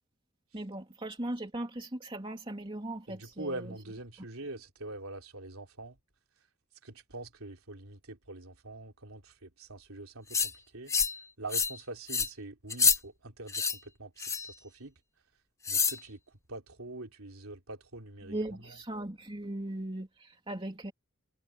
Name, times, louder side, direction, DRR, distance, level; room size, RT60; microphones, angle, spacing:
voice 1, 0.5-3.7 18.3-20.9, right 1 dB, 25° right, 2.7 m, -38 dB
voice 2, 3.1-6.0 6.8-10.9 11.4-14.9 15.7-16.2 16.5-18.4 18.6-18.8, right 2 dB, 80° right, 3.3 m, -44 dB
sound 1, 10.3-10.5 10.9-11.2 11.5-11.8 12.1-12.3 12.7-13.0 13.5-13.8 14.2-14.5 15.6-16.0, left 5 dB, 15° left, 0.7 m, -27 dB
head